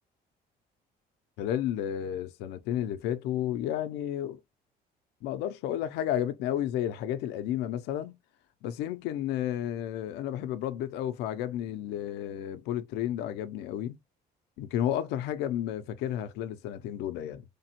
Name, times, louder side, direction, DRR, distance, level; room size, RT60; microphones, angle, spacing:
voice 1, 1.4-4.4 5.2-8.1 8.6-14.0 14.6-17.4, left 11 dB, 90° left, 0.4 m, -32 dB
3.2 x 2.1 x 2.8 m
cardioid pair, 110°, 17 cm